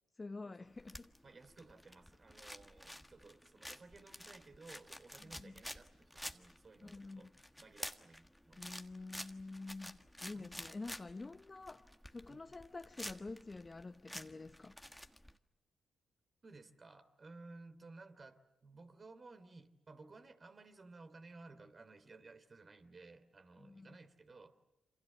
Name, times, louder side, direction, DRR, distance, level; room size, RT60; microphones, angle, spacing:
voice 1, 0.1-1.1 5.3-5.6 6.8-7.3 8.6-14.8 23.6-24.0, left 3 dB, 30° left, 0.9 m, -48 dB
sound 1, 0.7-15.3, equal, 5° left, 1.5 m, -51 dB
voice 2, 1.2-7.3 7.6-8.8 10.3-10.5 12.3-12.4 16.4-24.6, right 3 dB, 45° right, 3.0 m, -57 dB
28.0 x 26.0 x 7.4 m
supercardioid pair, 45°, 0 cm